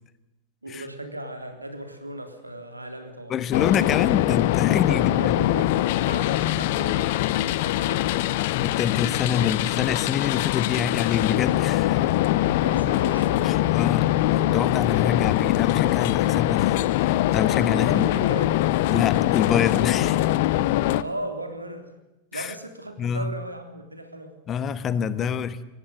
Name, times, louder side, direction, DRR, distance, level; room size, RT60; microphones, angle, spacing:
voice 1, 0.6-3.4 4.9-7.1 7.6-8.5 9.4-9.5 12.4-13.6 17.8-18.7 20.9-21.9 22.3-24.4, right 1 dB, 85° right, 7 dB, 3.5 m, -36 dB
voice 2, 3.3-5.2 8.6-12.0 13.4-18.0 18.9-20.2 22.3-22.5 23.0-23.3 24.5-25.6, left 8 dB, 30° left, 15 dB, 1.4 m, -26 dB
sound 1, 3.5-21.0, left 15 dB, 50° left, 0.9 m, -23 dB
24.5 x 19.5 x 7.9 m, 0.97 s
figure-of-eight pair, 90°, 0 cm